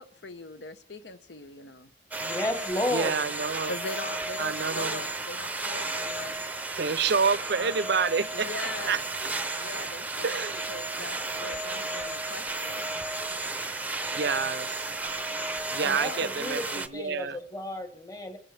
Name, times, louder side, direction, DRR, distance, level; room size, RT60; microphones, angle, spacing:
voice 1, 0.0-1.9 3.7-6.3 7.6-7.7 8.3-9.1 9.6-10.4 10.7-12.9 15.9-16.3, left 3 dB, 70° left, 12 dB, 0.9 m, -41 dB
sound 1, 2.1-16.9, right 2 dB, 10° right, 0.7 m, -33 dB
voice 2, 2.2-3.2 15.8-18.4, left 1 dB, 20° left, 6 dB, 1.4 m, -33 dB
voice 3, 2.9-3.7 4.4-5.0 6.8-8.5 8.9-9.0 10.2-10.6 14.1-14.9 15.7-17.4, right 5 dB, 65° right, 16 dB, 0.6 m, -28 dB
30.0 x 14.0 x 3.4 m, 0.64 s
head